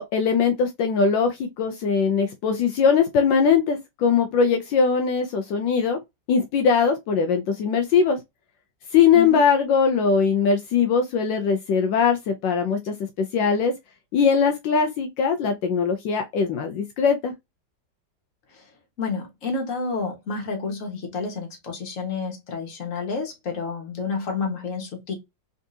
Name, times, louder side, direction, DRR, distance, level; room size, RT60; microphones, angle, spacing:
voice 1, 0.0-6.0 6.3-8.2 8.9-13.7 14.1-17.3, left 6 dB, 80° left, 1.3 m, -21 dB
voice 2, 19.0-25.1, left 4 dB, 45° left, 1.6 m, -30 dB
3.8 x 3.6 x 2.6 m
omnidirectional pair, 2.0 m